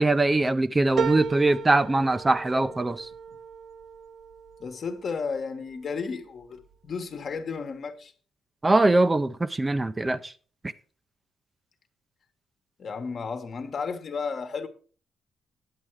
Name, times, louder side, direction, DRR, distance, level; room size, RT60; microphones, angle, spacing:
voice 1, 0.0-3.1 8.6-10.3, right 2 dB, 20° right, 0.5 m, -22 dB
sound 1, 1.0-5.7 6.2-6.9 7.3-7.4, right 6 dB, 70° right, 0.9 m, -35 dB
voice 2, 4.6-8.1 12.8-14.7, left 5 dB, 50° left, 1.2 m, -33 dB
9.7 x 7.6 x 4.7 m
cardioid pair, 90°, 0 cm